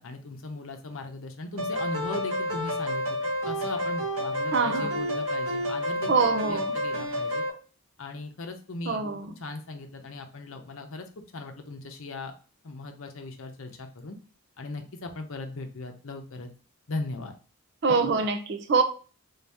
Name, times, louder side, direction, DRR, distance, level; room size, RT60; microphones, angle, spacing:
voice 1, 0.0-3.2 3.4-7.4 8.0-9.0 9.4-11.0 11.3-12.3 12.6-14.2 14.6-16.5 16.9-17.3, left 2 dB, 65° left, 0.7 m, -38 dB
sound 1, 1.6-7.5, equal, 85° right, 1.3 m, -30 dB
voice 2, 4.5-4.9 6.1-6.7 8.9-9.3 17.8-18.8, right 4 dB, 50° right, 0.6 m, -24 dB
3.8 x 2.8 x 3.4 m
head